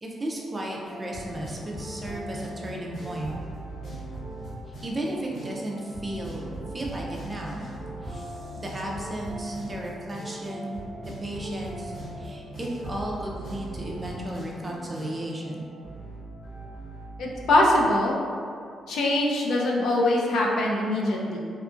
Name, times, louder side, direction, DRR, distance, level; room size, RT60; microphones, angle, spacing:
voice 1, 0.0-3.3 4.8-6.5 6.7-7.7 8.0-8.2 8.6-15.7, right 1 dB, 20° right, -2 dB, 0.3 m, -34 dB
sound 1, 0.8-17.7, right 1 dB, 50° left, 1.0 m, -39 dB
voice 2, 17.2-18.2 18.9-21.4, left 1 dB, 80° left, -2 dB, 0.4 m, -23 dB
2.7 x 2.3 x 2.4 m, 2.3 s
cardioid pair, 155°, 0 cm